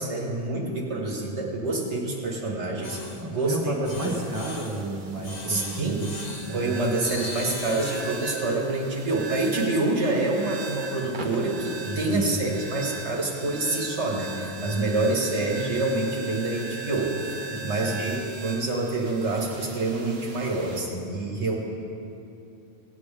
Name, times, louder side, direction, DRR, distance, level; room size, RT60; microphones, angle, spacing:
voice 1, 0.0-3.0 3.3-4.1 5.5-6.1 6.5-21.6, right 2 dB, 65° right, -2 dB, 1.8 m, -27 dB
sound 1, 2.8-3.2 3.8-4.8 5.2-6.5 7.0-8.2, left 2 dB, 40° left, 1.0 m, -38 dB
voice 2, 3.0-6.2 6.5-6.8 11.8-12.6 14.7-15.0 17.5-18.0 21.3-21.6, right 2 dB, 15° right, -3 dB, 1.3 m, -32 dB
sound 2, 4.0-20.8, right 3 dB, 45° right, 1.0 m, -38 dB
17.0 x 9.3 x 3.4 m, 2.8 s
omnidirectional pair, 1.2 m